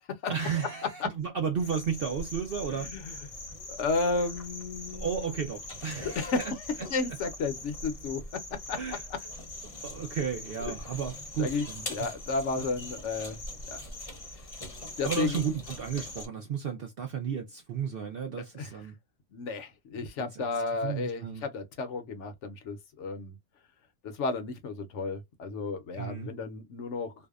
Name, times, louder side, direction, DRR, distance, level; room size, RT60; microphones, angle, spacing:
voice 1, 0.3-2.9 4.9-6.5 6.8-6.9 8.8-9.0 9.8-12.1 12.6-12.7 15.0-18.9 20.0-20.4 20.8-21.4 25.9-26.3, right 7 dB, 60° right, 0.6 m, -33 dB
sound 1, 1.6-16.3, left 2 dB, 30° left, 0.7 m, -42 dB
voice 2, 2.7-3.1 3.7-5.3 6.0-6.6 6.9-9.2 10.6-10.8 11.4-13.4 13.7-13.8 15.0-15.4 18.6-18.7 19.3-23.4 24.0-27.1, left 3 dB, 65° left, 0.9 m, -33 dB
2.6 x 2.1 x 2.3 m
omnidirectional pair, 1.4 m